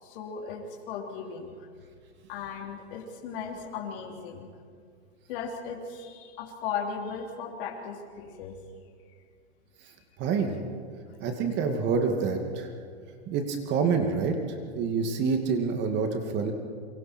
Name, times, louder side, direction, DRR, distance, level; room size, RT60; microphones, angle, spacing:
voice 1, 0.0-1.7 2.3-4.5 5.3-8.6, left 6 dB, 55° left, -1 dB, 3.5 m, -37 dB
voice 2, 10.2-10.6 11.2-12.7 13.3-14.4 14.7-16.5, right 5 dB, 35° right, 4 dB, 2.4 m, -27 dB
29.5 x 24.0 x 4.5 m, 2.1 s
hypercardioid pair, 140°, 33 cm